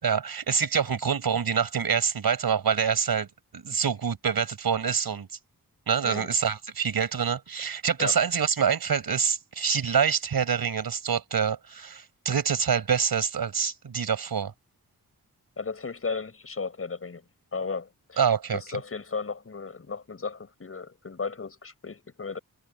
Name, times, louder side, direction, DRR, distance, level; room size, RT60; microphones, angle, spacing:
voice 1, 0.0-3.3 3.5-5.3 5.9-14.5 18.2-18.6, right 7 dB, 85° right, 5.1 m, -26 dB
voice 2, 15.6-17.2 17.5-18.2 18.5-22.4, left 4 dB, 40° left, 6.3 m, -35 dB
wide cardioid pair, 175°, 36 cm